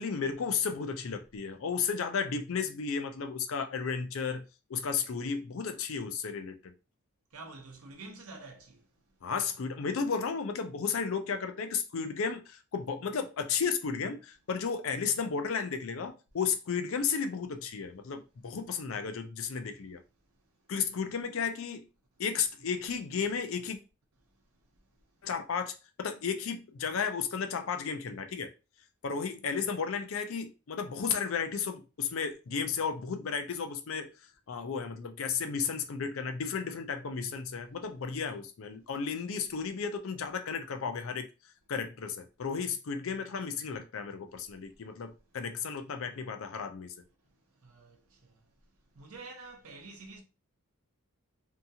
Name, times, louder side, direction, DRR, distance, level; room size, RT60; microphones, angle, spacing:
voice 1, 0.0-6.7 9.2-20.0 20.7-21.8 22.2-23.8 25.2-28.5 29.0-34.1 34.5-41.3 41.7-46.9, left 6 dB, 60° left, 0.4 m, -33 dB
voice 2, 7.3-9.2 24.4-24.9 44.6-44.7 45.2-45.3 47.2-50.2, right 3 dB, 75° right, 0.8 m, -50 dB
2.8 x 2.3 x 2.7 m
head